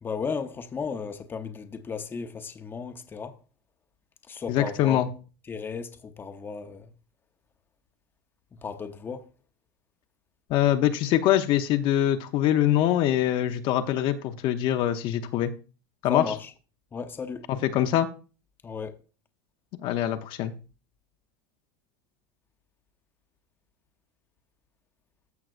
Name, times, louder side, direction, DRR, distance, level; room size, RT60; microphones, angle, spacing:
voice 1, 0.0-3.4 4.3-5.1 5.5-6.9 8.6-9.3 16.1-16.5 16.9-17.5 18.6-18.9, left 5 dB, 20° left, 0.8 m, -34 dB
voice 2, 4.5-5.1 10.5-15.5 16.0-16.2 17.5-18.1 19.8-20.5, left 12 dB, 50° left, 0.7 m, -24 dB
14.0 x 5.9 x 2.5 m
supercardioid pair, 125°, 11 cm